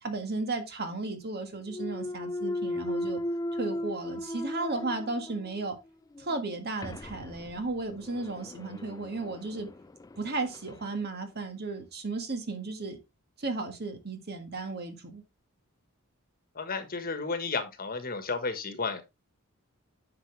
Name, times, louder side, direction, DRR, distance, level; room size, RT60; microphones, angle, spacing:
voice 1, 0.0-3.2 3.5-5.7 6.2-9.7 10.2-13.0 13.4-15.2, right 3 dB, 50° right, 1.7 m, -34 dB
Thump thud, 1.6-5.7 6.1-10.8, left 1 dB, 15° left, 0.3 m, -37 dB
voice 2, 16.5-19.0, left 4 dB, 45° left, 1.4 m, -32 dB
9.5 x 6.0 x 3.3 m
head